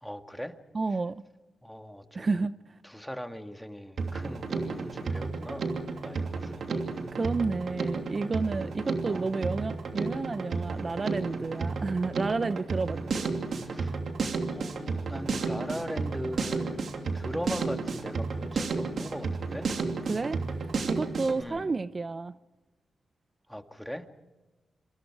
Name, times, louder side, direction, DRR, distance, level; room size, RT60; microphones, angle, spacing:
voice 1, 0.0-0.5 1.6-2.3 2.8-6.9 9.0-9.3 13.6-14.0 14.5-16.8 17.1-19.7 21.4-21.7 23.5-24.1, equal, ahead, 2.1 m, -40 dB
voice 2, 0.7-1.2 2.1-2.8 7.1-13.3 20.1-22.4, right 3 dB, 40° right, 0.7 m, -31 dB
Drum kit, 4.0-21.4, right 4 dB, 70° right, 2.9 m, -32 dB
26.5 x 25.5 x 4.9 m
cardioid pair, 70°, 0 cm